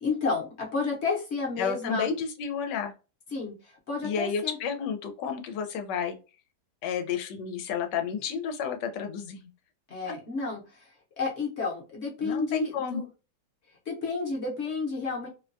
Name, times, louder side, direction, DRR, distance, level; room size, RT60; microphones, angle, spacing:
voice 1, 0.0-2.1 3.3-4.6 9.9-10.9 11.2-13.1 13.9-15.3, left 4 dB, 50° left, -1 dB, 1.0 m, -31 dB
voice 2, 1.6-2.9 4.0-6.2 6.8-9.5 10.1-10.2 12.2-13.1, left 6 dB, 90° left, 6 dB, 1.2 m, -31 dB
3.0 x 2.2 x 2.5 m, 0.31 s
omnidirectional pair, 1.8 m